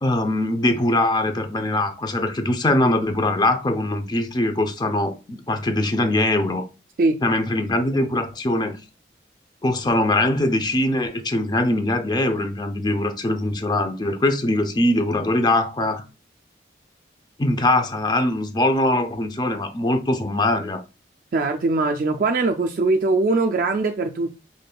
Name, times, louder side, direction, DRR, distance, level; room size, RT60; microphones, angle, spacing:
voice 1, 0.0-6.7 7.2-8.7 9.6-16.0 17.4-20.8, left 1 dB, 25° left, 0.5 m, -22 dB
voice 2, 21.3-24.4, right 3 dB, 50° right, 0.3 m, -21 dB
5.2 x 3.2 x 2.2 m
head